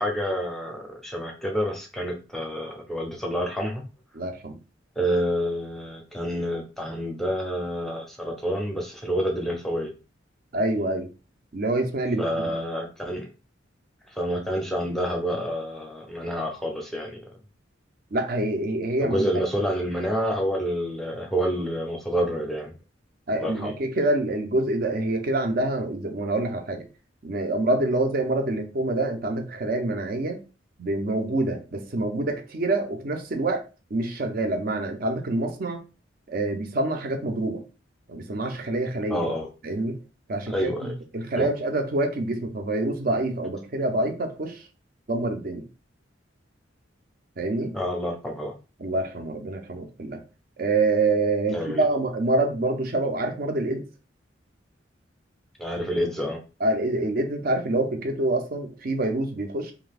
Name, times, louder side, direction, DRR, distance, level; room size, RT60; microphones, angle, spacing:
voice 1, 0.0-3.8 5.0-9.9 12.2-13.3 14.1-17.2 19.0-22.7 23.4-23.7 39.1-39.5 40.5-40.9 41.4-41.5 47.7-48.5 51.5-51.8 55.6-56.4, equal, ahead, 0.6 m, -28 dB
voice 2, 4.1-4.6 10.5-11.1 11.5-12.5 18.1-19.3 23.3-26.8 27.2-30.4 30.8-35.8 36.3-37.6 38.1-39.2 39.6-40.0 40.3-44.6 45.1-45.7 47.4-47.8 48.8-50.2 50.6-53.9 56.6-59.7, right 2 dB, 50° right, 0.6 m, -26 dB
2.8 x 2.4 x 3.3 m
head